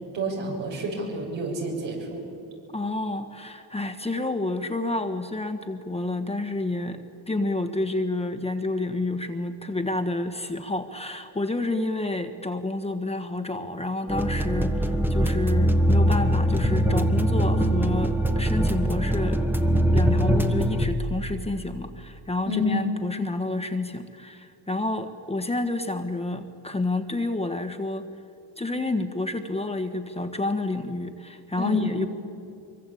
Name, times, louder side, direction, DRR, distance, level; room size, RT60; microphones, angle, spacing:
voice 1, 0.1-2.2 22.5-22.7 31.6-31.8, equal, 80° right, 0 dB, 7.5 m, -29 dB
voice 2, 2.7-19.4 19.9-28.1 28.6-32.1, left 2 dB, 15° left, 7 dB, 1.5 m, -29 dB
sound 1, 14.1-20.9, right 1 dB, 5° right, 1.4 m, -22 dB
24.0 x 23.5 x 8.7 m, 2.6 s
cardioid pair, 105°, 44 cm